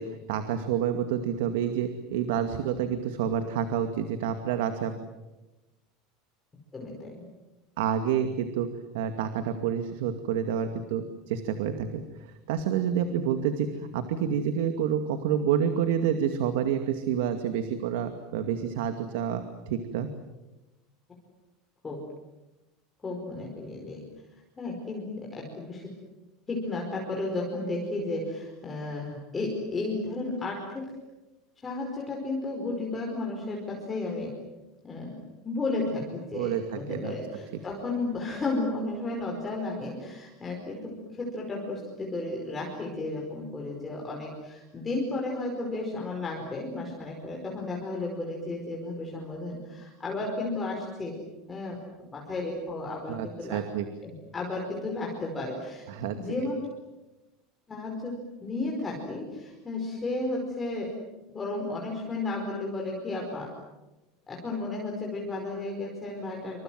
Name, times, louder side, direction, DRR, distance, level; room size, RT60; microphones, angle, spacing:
voice 1, 0.0-4.9 7.8-8.7 8.9-12.0 12.5-13.7 13.9-20.1 36.3-37.1 53.1-53.9 55.9-56.2, right 8 dB, 80° right, 7 dB, 2.3 m, -28 dB
voice 2, 6.7-7.2 21.8-22.0 23.0-24.0 24.6-25.9 26.5-30.9 31.6-34.4 34.8-35.2 35.4-51.2 51.5-53.6 54.0-55.8 56.1-56.6 57.7-61.0 61.3-63.5 64.3-66.6, left 2 dB, 15° left, -1 dB, 5.0 m, -33 dB
28.5 x 26.0 x 7.8 m, 1.1 s
supercardioid pair, 160°, 0 cm